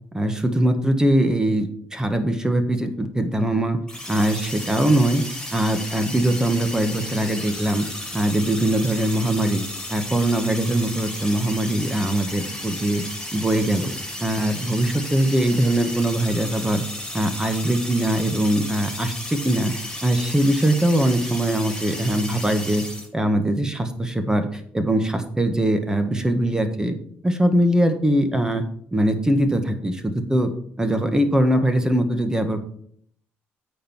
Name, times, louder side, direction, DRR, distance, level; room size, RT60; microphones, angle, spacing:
voice 1, 0.1-3.8 4.1-5.2 5.5-7.9 8.1-9.6 9.9-13.0 13.3-13.9 14.2-16.8 17.1-22.8 23.1-27.0 27.2-28.6 28.9-30.5 30.8-32.6, right 1 dB, 15° right, 7 dB, 1.5 m, -21 dB
sound 1, 3.9-23.1, left 1 dB, 10° left, 3.8 m, -34 dB
8.9 x 4.6 x 7.1 m, 0.62 s
supercardioid pair, 75°, 5 cm